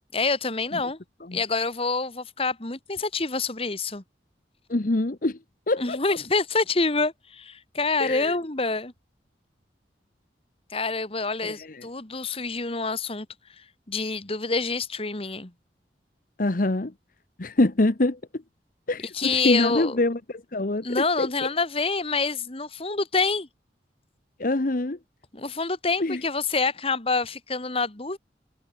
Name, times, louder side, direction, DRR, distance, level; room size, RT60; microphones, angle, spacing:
voice 1, 0.1-1.0 1.3-4.0 5.8-8.9 10.7-13.3 13.6-15.5 19.1-20.0 20.8-23.5 25.3-28.2, left 3 dB, 35° left, 1.8 m, -27 dB
voice 2, 4.7-5.4 5.7-6.0 8.0-8.4 11.4-11.9 16.4-16.9 17.4-18.4 18.9-21.5 24.4-25.0 26.0-26.2, left 2 dB, 50° left, 1.0 m, -25 dB
head